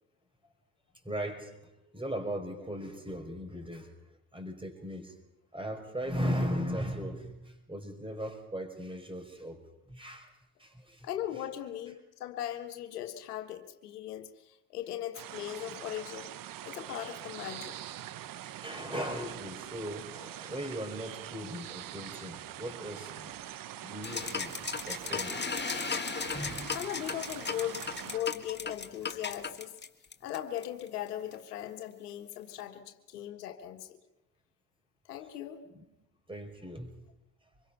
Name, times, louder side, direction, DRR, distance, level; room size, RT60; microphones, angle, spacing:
voice 1, 1.0-3.9 4.3-5.2 5.5-9.6 9.9-10.3 10.6-11.1 15.7-15.8 18.4-23.4 23.8-24.5 24.9-25.3 26.3-26.8 35.7-35.8 36.3-36.9, equal, 10° right, 5 dB, 5.4 m, -38 dB
voice 2, 11.0-16.3 16.6-17.7 26.7-29.7 30.2-34.0 35.0-35.6, left 11 dB, 85° left, 6 dB, 1.6 m, -39 dB
sound 1, 15.1-28.2, right 12 dB, 45° right, 0.9 m, -44 dB
sound 2, 24.0-30.9, left 5 dB, 25° left, 1.8 m, -36 dB
25.5 x 22.5 x 5.7 m, 0.93 s
hypercardioid pair, 60°, 45 cm